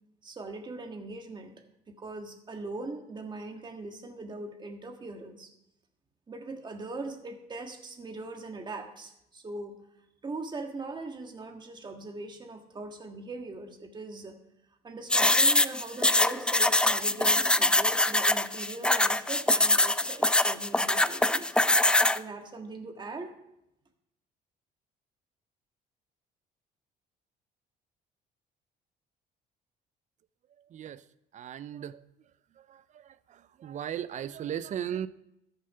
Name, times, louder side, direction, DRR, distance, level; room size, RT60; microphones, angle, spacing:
voice 1, 0.2-1.5 1.9-5.5 6.3-9.7 10.2-14.3 14.8-21.5 22.1-23.4, right 3 dB, 25° right, 4 dB, 1.7 m, -40 dB
sound 1, 15.1-22.2, left 1 dB, 5° left, 0.3 m, -23 dB
voice 2, 31.3-31.9 33.6-35.1, right 10 dB, 45° right, 16 dB, 0.5 m, -35 dB
13.0 x 6.6 x 5.6 m, 0.82 s
cardioid pair, 110°, 17 cm